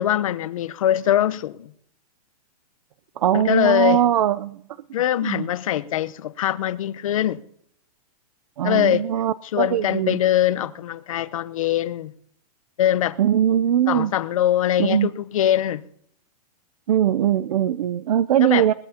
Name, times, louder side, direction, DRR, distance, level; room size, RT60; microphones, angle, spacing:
voice 1, 0.0-1.7 3.3-4.0 4.9-7.4 8.6-9.1 9.5-12.1 12.8-13.2 13.9-15.8 18.4-18.7, left 11 dB, 60° left, 0.8 m, -22 dB
voice 2, 3.2-4.6 5.2-5.4 8.6-10.2 13.2-14.1 14.8-15.1 16.9-18.7, right 10 dB, 70° right, 0.5 m, -21 dB
21.0 x 19.0 x 2.8 m
supercardioid pair, 180°, 20 cm